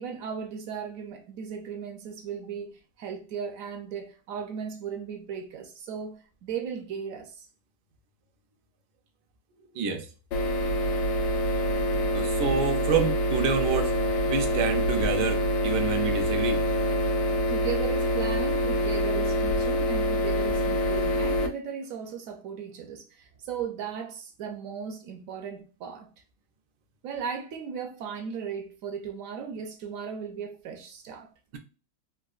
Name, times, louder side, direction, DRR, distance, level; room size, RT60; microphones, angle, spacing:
voice 1, 0.0-7.5 17.5-26.1 27.0-31.3, right 7 dB, 70° right, 0.8 m, -37 dB
voice 2, 9.7-10.1 12.1-14.0 14.3-16.6 31.5-31.6, right 6 dB, 85° right, 1.2 m, -28 dB
sound 1, 10.3-21.5, equal, 80° left, 1.2 m, -26 dB
3.9 x 2.3 x 2.3 m
omnidirectional pair, 1.8 m